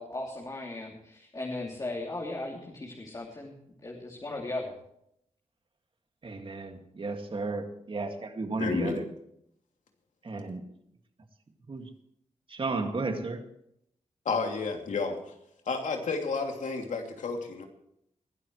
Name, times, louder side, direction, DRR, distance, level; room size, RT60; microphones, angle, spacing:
voice 1, 0.0-3.5 3.8-4.7, left 2 dB, 30° left, -2 dB, 3.0 m, -37 dB
voice 2, 6.2-9.1 10.2-10.6 11.7-11.9 12.5-13.5, right 3 dB, 45° right, 5 dB, 2.2 m, -33 dB
voice 3, 8.6-9.0 14.2-15.3 15.6-17.7, left 4 dB, 85° left, 2 dB, 2.8 m, -31 dB
22.0 x 13.0 x 3.2 m, 0.75 s
wide cardioid pair, 110°, 13 cm